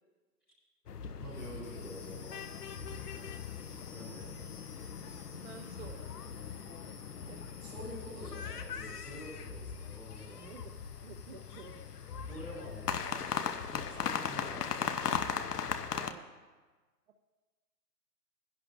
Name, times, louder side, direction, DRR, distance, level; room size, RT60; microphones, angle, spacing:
sound 1, 0.9-16.1, left 7 dB, 80° left, 0.9 m, -39 dB
sound 2, 1.2-14.7, left 5 dB, 20° left, 0.9 m, -56 dB
voice 1, 1.2-2.4 3.9-4.3 7.6-10.6 12.3-12.9 13.7-14.8, equal, ahead, -16 dB, 0.4 m, -47 dB
voice 2, 5.3-6.1 7.3-7.4 10.4-10.8 11.0-11.8 13.0-13.2 15.9-16.3, right 7 dB, 50° right, 4 dB, 0.7 m, -51 dB
21.0 x 11.0 x 2.5 m, 1.3 s
hypercardioid pair, 150°, 46 cm